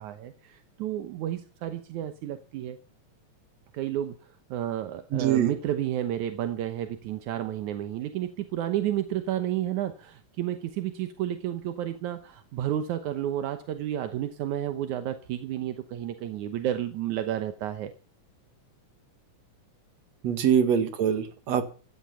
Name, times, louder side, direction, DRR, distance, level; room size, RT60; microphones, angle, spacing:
voice 1, 0.0-2.8 3.7-17.9 20.4-20.5, right 11 dB, 80° right, 9 dB, 2.5 m, -31 dB
voice 2, 5.1-5.5 20.2-21.6, right 8 dB, 65° right, 9 dB, 3.0 m, -24 dB
16.0 x 13.5 x 5.7 m, 0.37 s
omnidirectional pair, 3.4 m